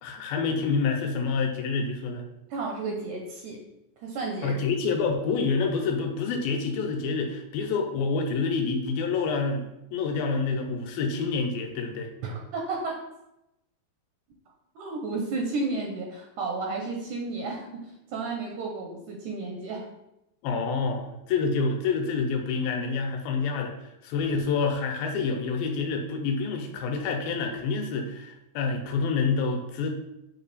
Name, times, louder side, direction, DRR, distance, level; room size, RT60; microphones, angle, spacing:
voice 1, 0.0-2.2 4.4-12.1 20.4-23.7 24.0-29.9, left 4 dB, 90° left, 3 dB, 2.8 m, -27 dB
voice 2, 2.5-3.6 4.0-4.6 12.2-13.0 14.8-19.9, right 3 dB, 70° right, 1 dB, 2.1 m, -32 dB
7.9 x 3.8 x 4.1 m, 0.88 s
omnidirectional pair, 4.2 m